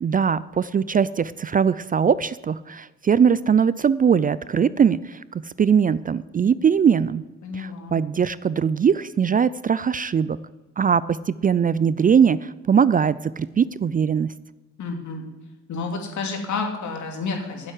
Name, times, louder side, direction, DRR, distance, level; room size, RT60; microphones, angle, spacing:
voice 1, 0.0-7.2 7.5-10.4 10.8-14.3, right 7 dB, 30° right, 17 dB, 0.4 m, -21 dB
voice 2, 7.4-8.0 14.8-15.3 15.7-17.7, left 4 dB, 70° left, 2 dB, 2.8 m, -30 dB
9.3 x 7.9 x 9.1 m, 1.2 s
cardioid pair, 90°, 30 cm